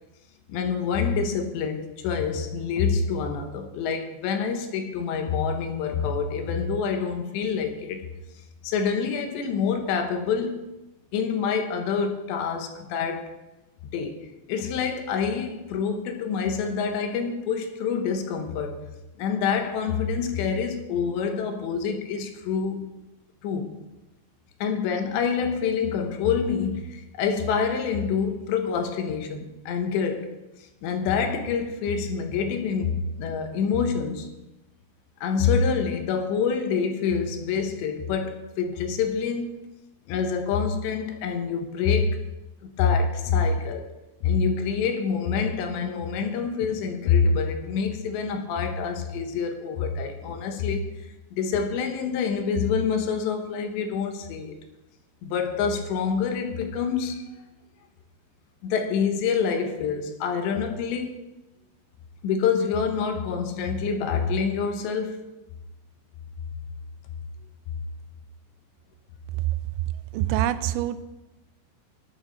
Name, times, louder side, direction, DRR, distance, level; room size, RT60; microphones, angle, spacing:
voice 1, 0.5-8.0 8.6-10.7 11.1-13.3 13.9-18.8 19.2-22.8 23.4-23.7 24.6-30.3 30.8-34.3 35.2-39.6 40.1-42.2 42.6-43.9 44.2-50.9 51.3-54.6 55.2-57.2 58.6-61.1 62.2-65.2, left 6 dB, 75° left, 3.2 m, -26 dB
voice 2, 70.1-71.0, right 12 dB, 85° right, 2.9 m, -25 dB
13.5 x 11.0 x 3.9 m
omnidirectional pair, 5.3 m